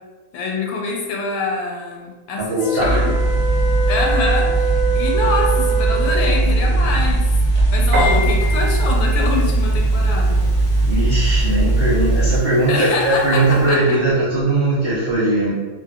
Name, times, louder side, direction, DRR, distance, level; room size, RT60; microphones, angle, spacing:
voice 1, 0.3-3.1 3.8-10.5 12.7-14.0, left 3 dB, 80° left, -1 dB, 1.3 m, -25 dB
voice 2, 2.4-3.1 10.9-15.5, right 2 dB, 75° right, -11 dB, 0.5 m, -19 dB
sound 1, 2.5-6.5, right 4 dB, 35° right, 1.4 m, -24 dB
sound 2, 2.8-12.4, right 2 dB, 50° left, 0.7 m, -18 dB
Piano, 7.9-13.8, left 1 dB, 55° right, 1.0 m, -30 dB
3.6 x 2.3 x 2.3 m, 1.3 s
omnidirectional pair, 2.2 m